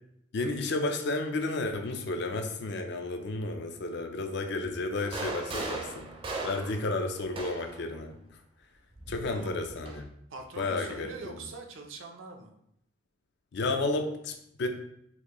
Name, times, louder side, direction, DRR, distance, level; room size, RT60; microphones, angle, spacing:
voice 1, 0.3-6.1 6.4-8.1 9.1-10.1 10.6-11.4 13.5-14.7, left 2 dB, 60° left, 5 dB, 0.5 m, -32 dB
sound 1, 4.9-7.8 9.0-10.0, right 3 dB, 25° right, 0.5 m, -38 dB
voice 2, 10.3-12.5, right 3 dB, 80° right, 3 dB, 0.6 m, -43 dB
4.2 x 2.6 x 2.9 m, 0.75 s
head